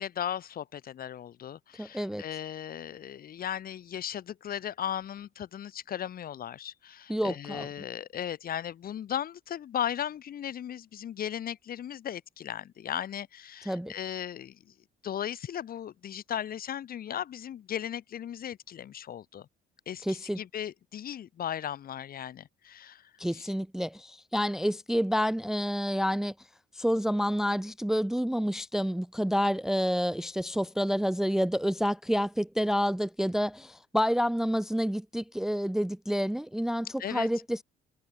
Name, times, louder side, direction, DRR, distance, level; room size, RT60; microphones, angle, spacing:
voice 1, 0.0-14.6 15.0-19.5 19.9-23.5 37.0-37.3, left 10 dB, 50° left, 1.4 m, -37 dB
voice 2, 1.8-2.2 7.1-7.7 13.7-13.9 20.0-20.4 23.2-26.3 26.7-37.6, equal, ahead, 0.5 m, -29 dB
cardioid pair, 120°, 19 cm